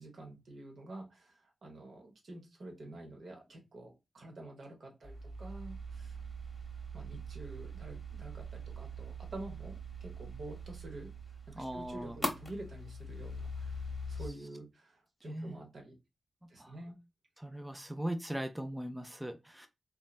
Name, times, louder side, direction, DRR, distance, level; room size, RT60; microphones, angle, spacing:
voice 1, 0.0-1.3 1.6-6.2 6.9-11.1 11.6-13.7 14.1-15.9 16.5-16.9, right 2 dB, 75° right, 2 dB, 0.9 m, -48 dB
sound 1, 5.0-14.3, right 1 dB, 35° left, 0.9 m, -42 dB
voice 2, 11.6-12.2 15.3-15.6 16.6-16.7 17.4-19.7, right 1 dB, 10° right, 7 dB, 0.4 m, -39 dB
3.0 x 2.1 x 2.2 m, 0.25 s
cardioid pair, 45°, 0 cm